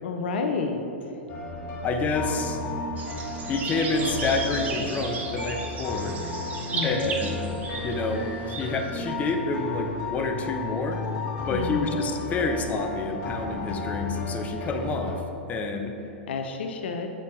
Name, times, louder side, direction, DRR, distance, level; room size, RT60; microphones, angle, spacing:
voice 1, 0.0-0.9 6.7-7.1 11.5-12.0 16.3-17.1, left 4 dB, 70° left, 5 dB, 0.5 m, -30 dB
sound 1, 1.3-15.1, left 2 dB, 45° left, 1.4 m, -34 dB
voice 2, 1.8-2.6 3.5-6.2 6.8-7.6 7.8-11.0 11.5-15.2 15.5-15.9, left 3 dB, 25° left, 4 dB, 0.6 m, -28 dB
sound 2, 3.0-9.1, right 4 dB, 25° right, 0.7 m, -35 dB
7.7 x 4.1 x 3.2 m, 2.8 s
hypercardioid pair, 105°, 6 cm